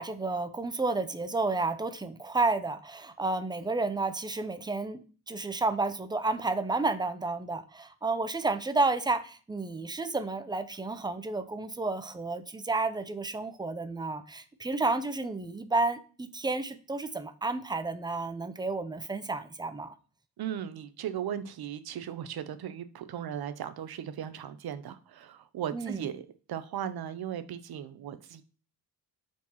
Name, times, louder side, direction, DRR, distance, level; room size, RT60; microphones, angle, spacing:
voice 1, 0.0-19.9 25.7-26.1, right 3 dB, 10° right, 10 dB, 0.6 m, -31 dB
voice 2, 20.4-28.4, right 9 dB, 70° right, 12 dB, 0.9 m, -37 dB
7.4 x 4.5 x 5.6 m, 0.38 s
wide cardioid pair, 150°, 38 cm